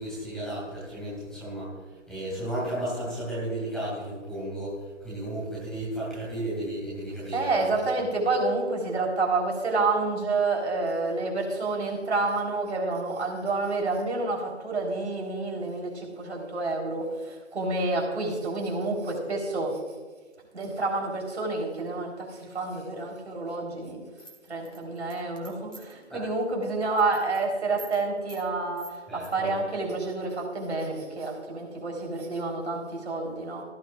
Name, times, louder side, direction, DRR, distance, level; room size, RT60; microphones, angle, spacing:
voice 1, 0.0-1.7 2.1-4.7 5.0-7.5 26.1-26.2 29.1-29.5, right 1 dB, ahead, -9 dB, 2.6 m, -33 dB
voice 2, 7.3-19.8 20.5-24.0 24.5-33.6, right 3 dB, 60° right, 0 dB, 4.0 m, -29 dB
sound 1, 24.2-26.0 26.4-26.6 26.9-27.4 27.8-28.0 28.3-28.4 28.8-29.3, right 2 dB, 85° right, 3.9 m, -47 dB
16.5 x 10.5 x 2.5 m, 1.4 s
figure-of-eight pair, 155°, 37 cm